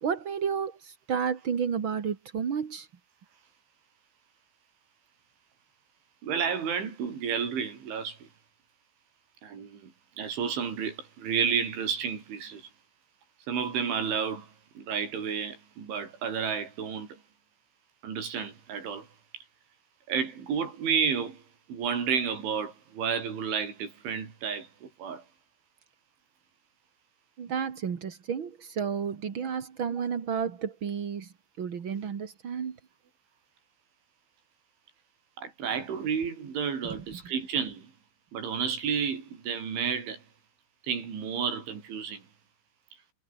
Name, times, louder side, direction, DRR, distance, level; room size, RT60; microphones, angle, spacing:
voice 1, 0.0-2.9 27.4-31.3 31.6-32.8, right 7 dB, 50° right, 1.4 m, -31 dB
voice 2, 6.2-8.3 9.4-12.7 13.5-17.2 18.0-19.1 19.3-19.5 20.1-21.4 21.7-25.2 35.4-37.9 38.3-40.2 40.8-42.2, right 6 dB, 85° right, 7.4 m, -31 dB
omnidirectional pair, 5.3 m